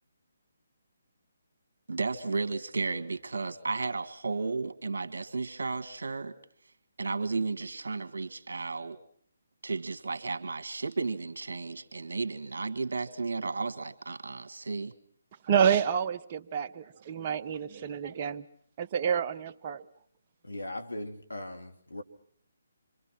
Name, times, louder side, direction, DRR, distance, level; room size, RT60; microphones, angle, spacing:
voice 1, 1.9-6.4 7.0-9.0 9.6-14.9, right 4 dB, 65° right, 11 dB, 1.9 m, -33 dB
voice 2, 15.5-18.4 18.8-19.8, right 8 dB, 35° right, 9 dB, 1.0 m, -28 dB
voice 3, 20.4-22.0, left 1 dB, 85° left, 6 dB, 2.7 m, -39 dB
27.5 x 25.0 x 5.9 m, 0.62 s
figure-of-eight pair, 140°, 0 cm